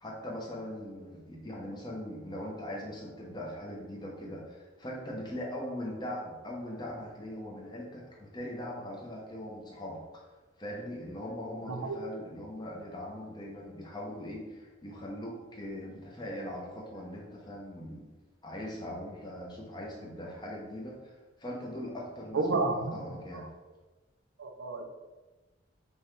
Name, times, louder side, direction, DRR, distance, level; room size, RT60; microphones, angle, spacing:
voice 1, 0.0-10.3 10.6-18.1 18.4-23.4, left 1 dB, 20° left, -2 dB, 0.7 m, -40 dB
voice 2, 11.7-12.0 22.3-22.9 24.4-24.9, right 3 dB, 75° right, 4 dB, 0.5 m, -30 dB
5.3 x 2.3 x 3.1 m, 1.2 s
head